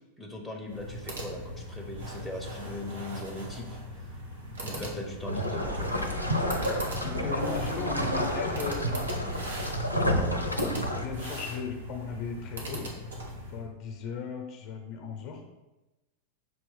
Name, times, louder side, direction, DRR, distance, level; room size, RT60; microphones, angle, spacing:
voice 1, 0.2-3.8 4.6-5.9 10.1-10.4, left 1 dB, ahead, -1 dB, 1.0 m, -39 dB
sound 1, 0.6-13.6, equal, 70° right, 1.3 m, -39 dB
sound 2, 5.3-11.1, left 1 dB, 85° left, 0.7 m, -30 dB
sound 3, 5.6-11.5, right 6 dB, 45° right, 0.5 m, -41 dB
voice 2, 6.5-9.3 10.9-12.9 13.5-15.4, left 5 dB, 40° left, 3 dB, 0.9 m, -37 dB
6.3 x 3.0 x 5.5 m, 1.0 s
figure-of-eight pair, 90°, 0 cm